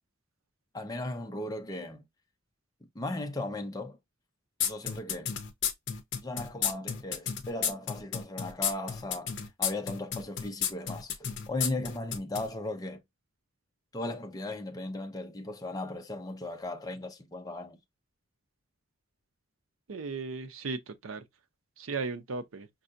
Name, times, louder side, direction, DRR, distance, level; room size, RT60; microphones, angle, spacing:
voice 1, 0.7-2.0 2.9-4.0 4.6-5.3 6.2-9.3 9.6-13.0 13.9-17.8, left 2 dB, 20° left, 0.6 m, -37 dB
sound 1, 4.6-12.5, left 8 dB, 60° left, 0.7 m, -32 dB
voice 2, 19.9-21.3 21.8-22.7, right 4 dB, 80° right, 0.6 m, -36 dB
5.4 x 2.6 x 2.5 m
head